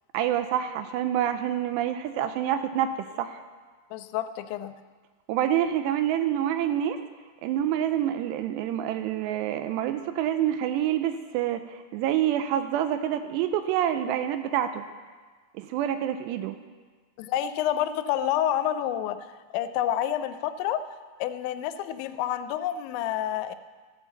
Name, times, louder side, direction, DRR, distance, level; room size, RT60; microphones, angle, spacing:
voice 1, 0.1-3.4 5.3-7.0 7.4-14.9 15.5-16.6, right 10 dB, 80° right, 9 dB, 2.6 m, -27 dB
voice 2, 3.9-4.7 17.2-19.2 19.5-20.8 21.2-23.6, left 11 dB, 85° left, 11 dB, 2.9 m, -28 dB
14.5 x 7.3 x 7.0 m, 1.4 s
omnidirectional pair, 5.2 m